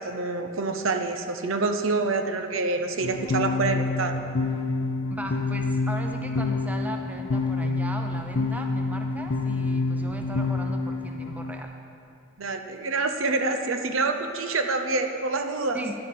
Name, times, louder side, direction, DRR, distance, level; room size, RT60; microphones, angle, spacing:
voice 1, 0.0-4.2 12.4-15.8, right 3 dB, 80° right, 6 dB, 0.8 m, -27 dB
sound 1, 3.0-11.6, left 3 dB, 65° left, 0.5 m, -27 dB
voice 2, 5.1-11.7 15.7-15.9, right 1 dB, 10° right, 3 dB, 0.6 m, -37 dB
11.0 x 7.7 x 6.0 m, 2.5 s
head